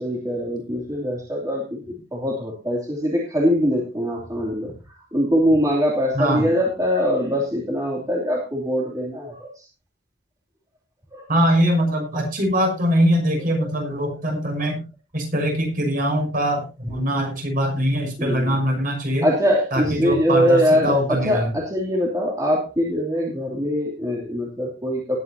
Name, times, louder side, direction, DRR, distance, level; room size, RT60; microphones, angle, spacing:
voice 1, 0.0-1.8 2.1-9.7 11.1-11.3 13.5-13.7 14.6-14.7 18.2-18.6 19.2-25.2, equal, 20° right, -2 dB, 2.8 m, -23 dB
voice 2, 6.1-6.5 11.3-14.8 15.1-19.3 19.7-21.5, equal, 45° right, 2 dB, 6.3 m, -22 dB
19.5 x 9.7 x 2.8 m, 0.30 s
head